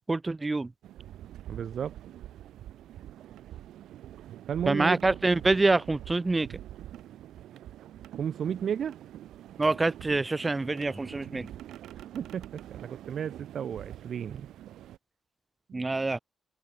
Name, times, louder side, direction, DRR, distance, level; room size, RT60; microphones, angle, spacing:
voice 1, 0.1-0.7 4.7-6.6 9.6-11.5 15.7-16.2, right 3 dB, 20° right, 0.6 m, -26 dB
sound 1, 0.8-15.0, right 12 dB, 85° right, 1.0 m, -45 dB
voice 2, 1.5-2.0 4.5-5.0 8.2-9.0 12.1-14.5 15.7-15.9, right 8 dB, 60° right, 0.6 m, -33 dB
open air
cardioid pair, 100°, 0 cm